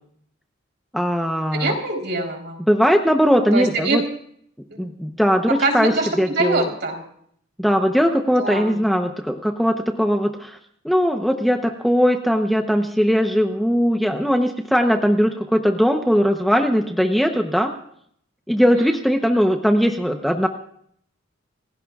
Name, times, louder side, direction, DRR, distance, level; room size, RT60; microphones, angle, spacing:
voice 1, 0.9-1.7 2.7-4.0 4.8-5.9 6.2-6.7 7.6-10.6 10.8-17.7 18.5-20.5, equal, ahead, 4 dB, 0.8 m, -19 dB
voice 2, 1.5-2.6 3.5-4.0 4.7-4.8 5.6-7.0 8.4-8.8 18.6-19.0, right 2 dB, 55° right, 1 dB, 3.7 m, -24 dB
29.0 x 16.5 x 2.4 m, 0.66 s
head